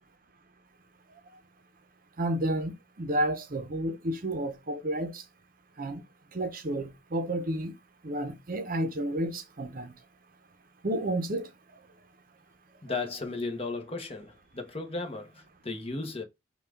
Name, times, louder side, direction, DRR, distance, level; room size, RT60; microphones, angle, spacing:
voice 1, 2.2-5.2 5.8-6.0 6.3-7.7 8.0-9.9 10.8-11.5, right 1 dB, 50° right, 0.7 m, -31 dB
voice 2, 12.8-16.2, left 3 dB, 30° left, 0.9 m, -35 dB
5.6 x 2.3 x 3.5 m
head